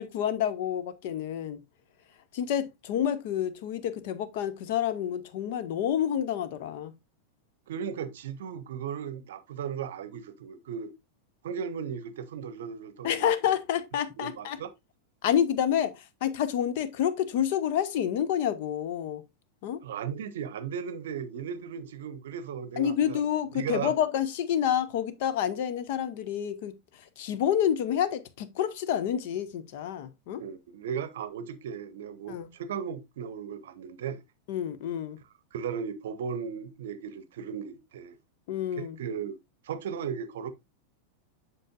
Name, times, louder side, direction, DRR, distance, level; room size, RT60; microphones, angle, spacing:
voice 1, 0.0-1.6 2.3-6.9 13.0-14.6 15.2-19.2 19.6-19.8 22.8-26.7 27.2-30.4 32.3-32.5 34.5-35.2 38.5-39.0, left 9 dB, 50° left, 0.8 m, -28 dB
voice 2, 7.7-10.9 11.4-13.3 14.2-14.7 19.8-23.2 23.5-23.9 30.4-34.2 35.5-38.2 38.8-39.4 39.6-40.5, right 7 dB, 60° right, 0.7 m, -36 dB
7.6 x 6.2 x 2.4 m
figure-of-eight pair, 90°, 0 cm